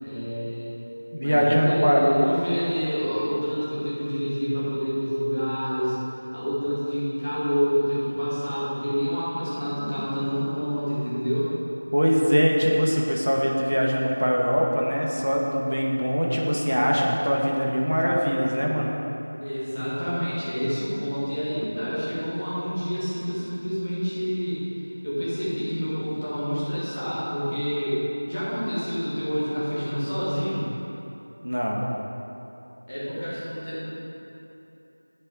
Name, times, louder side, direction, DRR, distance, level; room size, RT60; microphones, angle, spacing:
voice 1, 0.0-0.7 1.2-6.0 6.3-11.5 19.4-28.0 28.3-30.7 32.9-33.9, equal, 15° left, -10 dB, 1.3 m, -28 dB
voice 2, 1.1-2.0 11.9-18.9 31.4-31.8, equal, 85° right, -2 dB, 1.9 m, -22 dB
10.0 x 7.7 x 4.7 m, 3.0 s
figure-of-eight pair, 180°, 0 cm